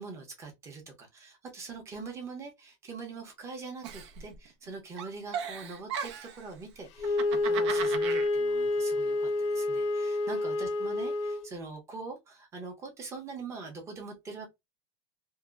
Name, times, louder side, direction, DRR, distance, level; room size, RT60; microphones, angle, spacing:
voice 1, 0.0-14.5, right 4 dB, 20° right, 0.8 m, -43 dB
Giggle, 3.8-4.7 5.0-6.4 7.0-8.3, right 7 dB, 70° right, 0.6 m, -36 dB
Wind instrument woodwind instrument, 7.0-11.5, left 2 dB, 70° left, 0.6 m, -28 dB
2.8 x 2.1 x 2.3 m
supercardioid pair, 165°, 15 cm